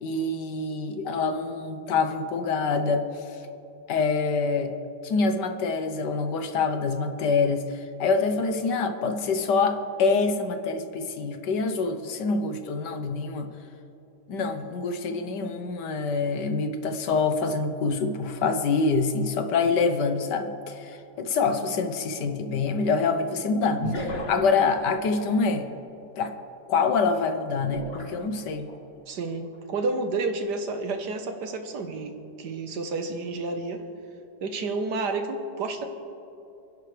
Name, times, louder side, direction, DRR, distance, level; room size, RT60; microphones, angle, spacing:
voice 1, 0.0-3.1 3.9-4.7 5.0-13.5 14.3-25.7 26.2-26.3 26.7-28.7, left 4 dB, 70° left, 7 dB, 1.5 m, -26 dB
sound 1, 20.9-21.0 23.8-24.7 27.6-28.8 29.3-29.6, equal, 35° left, 1.6 m, -33 dB
voice 2, 29.1-33.8 34.4-35.9, right 3 dB, 70° right, 6 dB, 1.7 m, -30 dB
28.5 x 10.5 x 3.3 m, 2.9 s
omnidirectional pair, 1.9 m